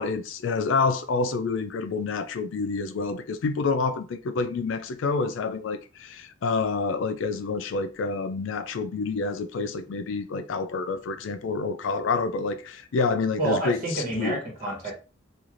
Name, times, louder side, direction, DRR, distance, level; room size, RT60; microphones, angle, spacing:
voice 1, 0.0-14.4, left 4 dB, 85° left, 0.4 m, -28 dB
voice 2, 13.4-14.9, right 2 dB, 40° right, 1.2 m, -28 dB
3.1 x 2.4 x 2.5 m
head